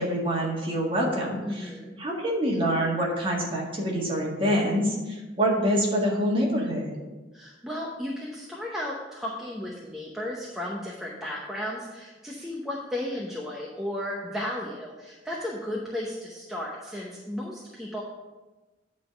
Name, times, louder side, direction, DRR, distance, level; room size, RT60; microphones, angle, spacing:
voice 1, 0.0-1.7 2.0-6.9, equal, 30° right, -2 dB, 1.7 m, -26 dB
voice 2, 1.4-1.9 7.3-18.0, left 1 dB, ahead, -4 dB, 0.8 m, -34 dB
9.3 x 3.7 x 5.7 m, 1.2 s
head